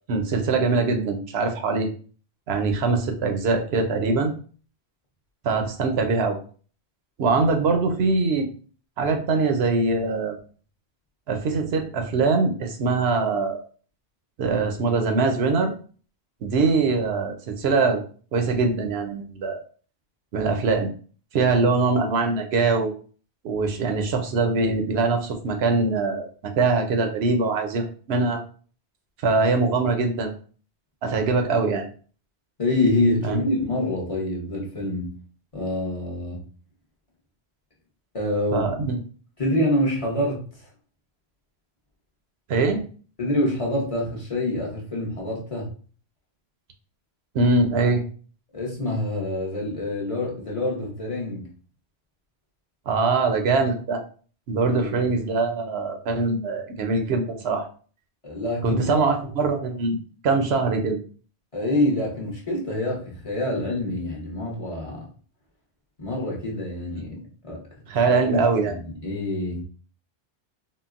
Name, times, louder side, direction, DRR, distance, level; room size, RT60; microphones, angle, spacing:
voice 1, 0.1-1.9 2.5-4.3 5.4-6.4 7.2-8.5 9.0-10.4 11.3-13.6 14.4-15.7 16.4-18.0 18.3-19.6 20.3-20.9 21.3-22.9 23.4-28.4 29.2-30.4 31.0-31.9 33.2-33.4 38.5-39.0 42.5-42.8 47.3-48.0 52.9-54.0 54.5-57.7 58.6-60.0 60.2-61.0 67.9-68.8, right 4 dB, 80° right, 5 dB, 0.9 m, -22 dB
voice 2, 32.6-35.2 35.5-36.4 38.1-38.7 39.4-40.7 43.2-45.7 48.5-51.5 54.7-55.1 58.2-59.0 61.5-65.1 66.0-67.2 67.4-67.6 68.1-69.6, left 1 dB, 35° left, -3 dB, 0.8 m, -26 dB
3.8 x 2.0 x 2.4 m, 0.41 s
omnidirectional pair, 1.1 m